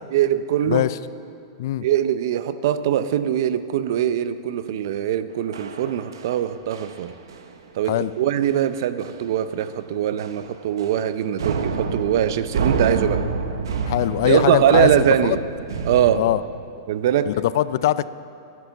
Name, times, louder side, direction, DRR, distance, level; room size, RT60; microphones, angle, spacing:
voice 1, 0.1-0.9 1.8-7.1 7.7-13.2 14.2-15.4 15.8-16.2 16.9-17.4, right 10 dB, 60° right, 13 dB, 0.6 m, -22 dB
voice 2, 0.7-1.0 1.6-1.8 7.9-8.1 13.8-14.9 15.2-15.4 16.1-16.4 17.3-18.1, left 13 dB, 60° left, 16 dB, 0.4 m, -21 dB
sound 1, 5.5-6.4 6.7-7.0 7.3-7.5 7.9-8.1 8.4-8.5 9.0-9.3 9.6-9.8 10.2-11.1 11.4-16.3, right 5 dB, 85° right, 1.1 m, -28 dB
12.0 x 10.5 x 7.0 m, 2.7 s
hypercardioid pair, 150°, 2 cm